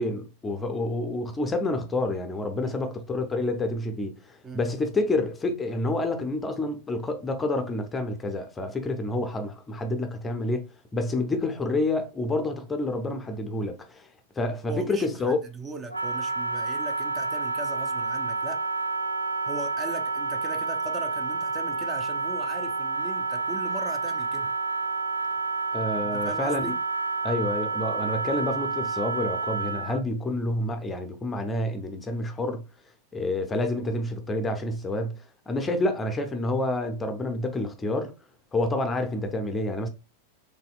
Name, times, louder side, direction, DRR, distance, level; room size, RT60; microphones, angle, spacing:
voice 1, 0.0-10.7 10.9-14.1 14.4-15.4 25.7-26.6 27.2-32.6 33.1-38.1 38.5-39.9, left 2 dB, 15° left, 0.6 m, -28 dB
voice 2, 2.6-3.0 4.4-4.6 14.7-18.6 19.5-24.5 26.0-26.8, right 2 dB, 20° right, 0.7 m, -39 dB
Wind instrument woodwind instrument, 15.9-30.0, right 4 dB, 85° right, 0.4 m, -29 dB
4.2 x 3.4 x 2.3 m
figure-of-eight pair, 90°, 0 cm